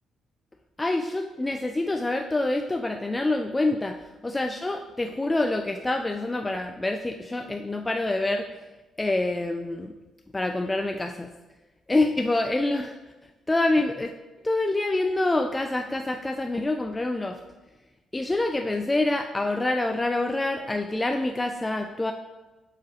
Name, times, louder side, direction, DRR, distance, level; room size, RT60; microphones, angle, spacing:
voice 1, 0.8-8.6 9.0-9.9 10.3-11.3 11.9-13.0 13.5-14.1 14.4-17.4 18.1-22.1, left 2 dB, 15° left, 4 dB, 0.4 m, -26 dB
8.1 x 4.8 x 3.1 m, 1.1 s
cardioid pair, 90°, 0 cm